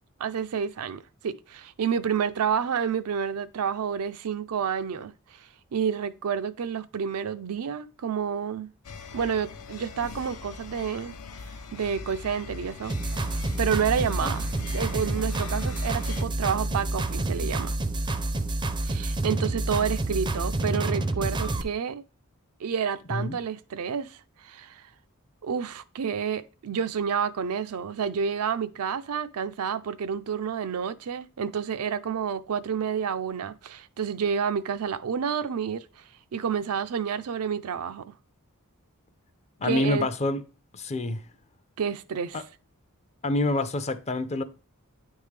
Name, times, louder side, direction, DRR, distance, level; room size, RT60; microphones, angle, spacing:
voice 1, 0.2-8.7 9.1-11.1 11.7-12.9 13.6-14.5 14.7-17.7 18.8-22.0 22.6-24.8 25.4-36.0 36.3-38.1 39.6-40.1 41.8-42.4, right 7 dB, 80° right, 0.4 m, -29 dB
sound 1, 8.8-16.2, left 4 dB, 75° left, 0.6 m, -42 dB
sound 2, 12.9-21.6, right 2 dB, 20° right, 0.4 m, -28 dB
voice 2, 39.6-40.4 40.7-41.2 42.3-42.4 43.2-44.4, left 2 dB, 30° left, 0.5 m, -27 dB
9.4 x 3.6 x 3.2 m
head